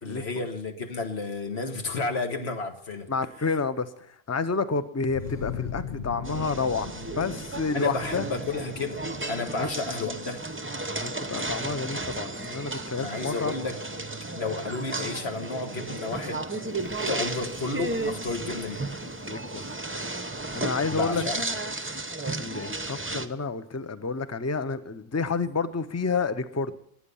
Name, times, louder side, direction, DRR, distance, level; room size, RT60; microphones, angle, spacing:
voice 1, 0.0-3.1 7.7-9.0 9.3-10.4 13.0-13.8 14.4-16.4 17.1-18.8 20.8-21.5, left 3 dB, 85° left, 5 dB, 1.8 m, -32 dB
voice 2, 3.1-8.3 9.6-9.7 10.9-13.5 19.3-19.7 20.5-21.2 22.3-26.7, left 4 dB, 20° left, 12 dB, 0.6 m, -29 dB
sound 1, 5.1-10.6, left 6 dB, 45° left, 1.1 m, -39 dB
sound 2, 6.2-23.3, right 2 dB, 15° right, 0.7 m, -34 dB
sound 3, 16.6-19.8 20.1-20.2 20.6-20.7, equal, 60° left, 6.0 m, -55 dB
21.5 x 8.6 x 5.5 m, 0.75 s
omnidirectional pair, 1.0 m